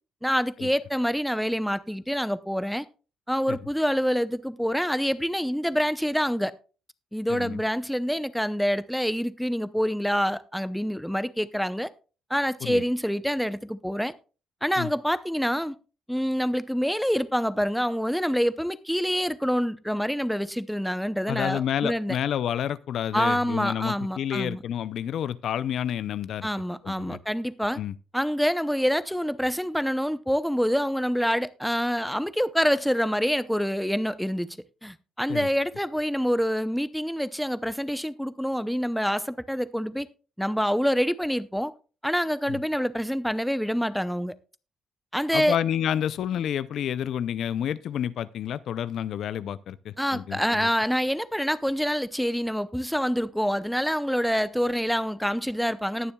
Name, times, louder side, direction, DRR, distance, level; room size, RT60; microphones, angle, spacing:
voice 1, 0.2-2.9 3.3-6.5 7.1-11.9 12.3-14.1 14.6-15.8 16.1-22.2 23.1-24.6 26.4-27.8 28.1-40.1 40.4-41.7 42.0-44.4 45.1-45.6 50.0-56.1, equal, ahead, 0.6 m, -26 dB
voice 2, 7.3-7.6 12.6-12.8 14.8-14.9 21.3-26.5 26.8-27.2 27.8-27.9 35.3-35.5 42.5-42.6 45.3-50.7, left 9 dB, 70° left, 0.4 m, -29 dB
19.0 x 7.0 x 2.3 m
cardioid pair, 90°, 0 cm